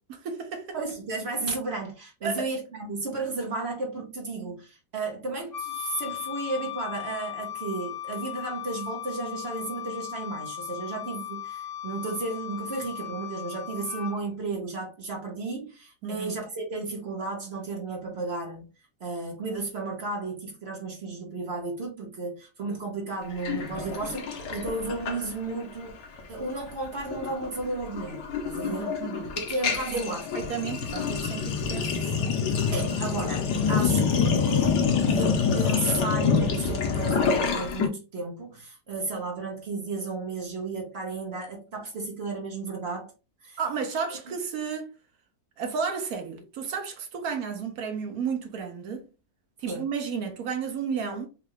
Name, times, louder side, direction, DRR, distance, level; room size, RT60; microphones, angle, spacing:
voice 1, 0.1-0.8 2.2-2.5 16.0-16.4 28.6-29.3 29.9-30.0 30.3-32.3 43.6-44.9 45.6-49.1 49.6-51.3, right 6 dB, 65° right, 1.1 m, -32 dB
voice 2, 0.7-18.7 19.0-26.0 26.3-28.9 29.3-30.5 32.7-43.1 43.4-43.6 49.6-49.8, right 3 dB, 45° right, 1.0 m, -33 dB
Wind instrument woodwind instrument, 5.5-14.2, left 12 dB, 55° left, 1.9 m, -37 dB
Sink (filling or washing), 23.4-25.6 25.9-26.2 26.5-37.9, left 6 dB, 85° left, 1.4 m, -26 dB
3.8 x 2.4 x 3.1 m
omnidirectional pair, 1.8 m